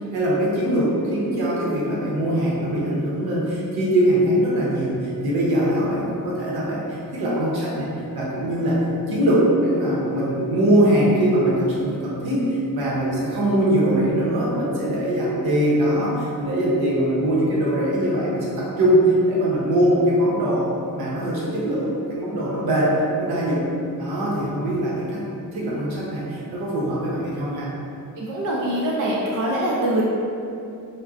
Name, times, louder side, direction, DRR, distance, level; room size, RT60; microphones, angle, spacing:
voice 1, 0.1-7.9 8.1-8.8 9.1-20.7 20.9-22.9 23.2-23.6 24.0-25.2 25.5-27.7, right 1 dB, 85° right, -6 dB, 0.8 m, -22 dB
voice 2, 28.2-30.0, right 1 dB, 60° right, -4 dB, 0.5 m, -23 dB
3.7 x 2.1 x 2.4 m, 2.6 s
wide cardioid pair, 100°, 37 cm